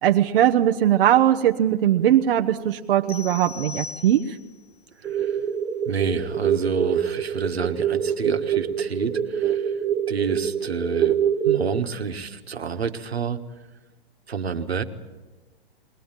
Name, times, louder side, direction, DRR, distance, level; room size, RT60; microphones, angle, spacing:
voice 1, 0.0-4.4, right 11 dB, 60° right, 4 dB, 1.0 m, -20 dB
sound 1, 3.1-4.6, left 5 dB, 85° left, 1.4 m, -38 dB
sound 2, 5.0-11.8, right 8 dB, 10° right, 0.7 m, -25 dB
voice 2, 5.0-5.4 5.8-9.8 10.1-11.2 11.4-13.4 14.3-14.8, right 6 dB, 90° right, 6 dB, 1.7 m, -29 dB
21.5 x 18.5 x 9.0 m, 1.2 s
hypercardioid pair, 125°, 31 cm